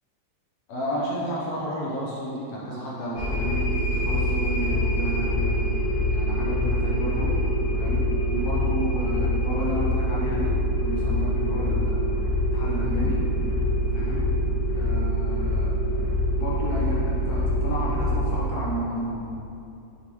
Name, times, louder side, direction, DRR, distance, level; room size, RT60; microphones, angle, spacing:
voice 1, 0.7-5.7 6.1-7.4 7.8-12.0 12.4-13.2 13.7-14.3 14.7-15.8 16.3-19.2, right 1 dB, 75° left, -5 dB, 1.6 m, -32 dB
sound 1, 3.2-18.5, equal, 45° left, 1.4 m, -25 dB
6.4 x 5.4 x 3.0 m, 2.7 s
omnidirectional pair, 3.8 m